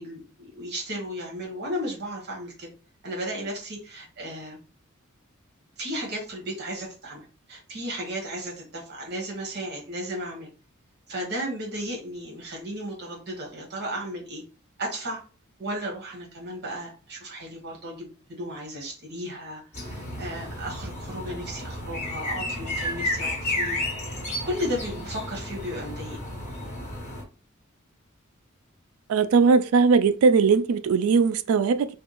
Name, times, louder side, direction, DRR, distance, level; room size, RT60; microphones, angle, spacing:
voice 1, 0.0-2.7 3.0-4.6 5.8-10.5 11.1-14.4 14.8-15.2 15.6-23.8 24.4-26.2, equal, 55° right, 1.2 m, -34 dB
sound 1, 19.7-27.2, left 1 dB, 35° left, 1.2 m, -32 dB
voice 2, 29.1-31.9, right 5 dB, 90° right, 0.3 m, -19 dB
3.4 x 2.3 x 2.9 m
head